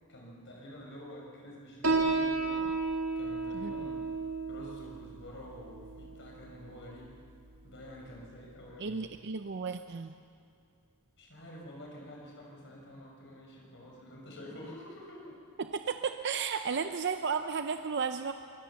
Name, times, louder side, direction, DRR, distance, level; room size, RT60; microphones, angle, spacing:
voice 1, 0.1-2.7 3.2-4.0 4.5-7.1 7.6-9.1 11.2-15.4, equal, 55° left, -1 dB, 5.5 m, -48 dB
Piano, 1.8-8.9, right 3 dB, 70° right, 2.5 m, -34 dB
voice 2, 8.8-10.1 15.6-18.3, right 5 dB, 50° right, 8 dB, 0.6 m, -33 dB
22.5 x 21.0 x 7.1 m, 2.4 s
head